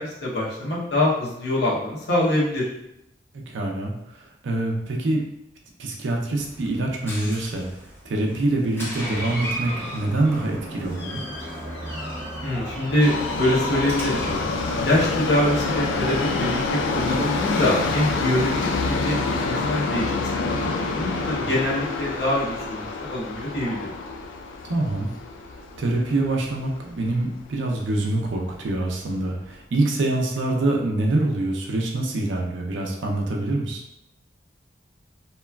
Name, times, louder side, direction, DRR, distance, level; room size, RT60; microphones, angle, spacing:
voice 1, 0.0-2.7 12.4-13.1 13.4-14.4 14.8-23.9, left 1 dB, 60° left, -5 dB, 0.8 m, -24 dB
voice 2, 3.3-5.2 5.8-7.7 8.0-11.2 21.4-21.5 24.6-25.1 25.8-33.8, right 2 dB, 80° right, 0 dB, 0.5 m, -25 dB
Door, 6.4-15.1, equal, 10° left, 0.6 m, -35 dB
Subway metro underground, 13.0-27.1 27.4-27.5 28.4-28.5 28.7-28.8 29.5-29.6, left 3 dB, 85° left, 0.3 m, -27 dB
2.9 x 2.3 x 2.2 m, 0.83 s
head